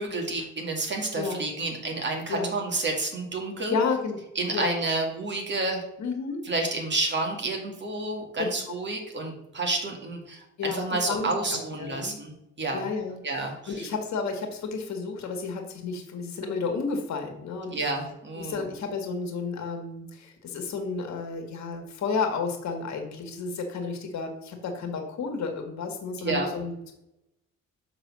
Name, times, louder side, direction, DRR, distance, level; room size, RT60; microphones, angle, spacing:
voice 1, 0.0-3.8 4.4-5.8 6.5-12.8 13.2-13.9 17.7-18.6 26.2-26.5, right 2 dB, 35° right, 1 dB, 2.0 m, -30 dB
voice 2, 3.7-4.2 4.5-4.8 6.0-6.5 10.6-12.2 12.7-17.8 18.4-26.9, left 4 dB, 65° left, 4 dB, 1.7 m, -32 dB
6.4 x 3.9 x 6.0 m, 0.86 s
cardioid pair, 90°, 30 cm